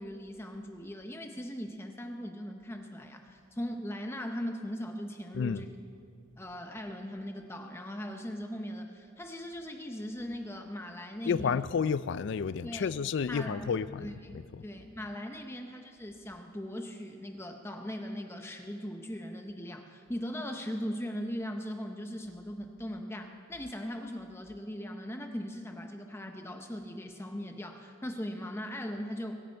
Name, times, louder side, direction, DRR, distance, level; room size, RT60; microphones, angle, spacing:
voice 1, 0.0-5.7 6.4-11.6 12.6-12.9 13.3-29.4, equal, 10° left, 0.7 m, -39 dB
voice 2, 11.3-14.6, left 6 dB, 60° left, 0.4 m, -31 dB
22.5 x 10.5 x 4.5 m
head